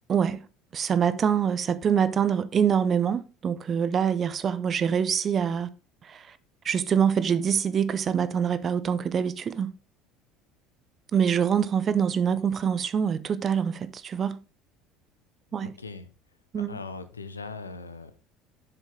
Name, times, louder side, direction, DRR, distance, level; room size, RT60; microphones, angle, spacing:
voice 1, 0.1-0.5 0.7-5.7 6.0-6.4 6.6-9.7 11.1-14.4 15.5-15.7 16.5-16.8, right 7 dB, 35° right, 0.7 m, -25 dB
voice 2, 15.6-16.1 16.5-18.2, left 4 dB, 85° left, 0.7 m, -40 dB
7.2 x 7.0 x 3.8 m
figure-of-eight pair, 65°, 0 cm